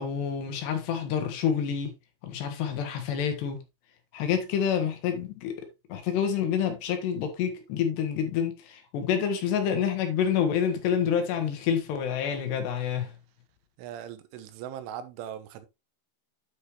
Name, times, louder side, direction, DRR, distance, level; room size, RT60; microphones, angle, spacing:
voice 1, 0.0-1.9 2.2-3.6 4.1-5.6 5.9-13.1, left 8 dB, 70° left, 3.1 m, -28 dB
voice 2, 13.8-15.7, right 10 dB, 80° right, 3.3 m, -39 dB
9.5 x 6.6 x 3.1 m
omnidirectional pair, 5.6 m